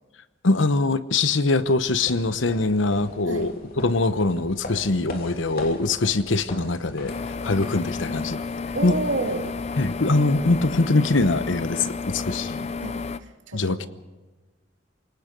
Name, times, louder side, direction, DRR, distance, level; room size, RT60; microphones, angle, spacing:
voice 1, 0.4-8.4 8.8-9.0 9.8-12.7 13.5-13.9, left 3 dB, 80° left, 13 dB, 1.0 m, -23 dB
sound 1, 1.4-11.1, left 1 dB, 50° left, 3.1 m, -42 dB
sound 2, 7.1-13.2, left 4 dB, 35° left, 0.6 m, -31 dB
voice 2, 8.7-9.5 12.8-13.9, right 2 dB, 85° right, 4 dB, 2.7 m, -30 dB
28.0 x 18.5 x 5.3 m, 1.2 s
head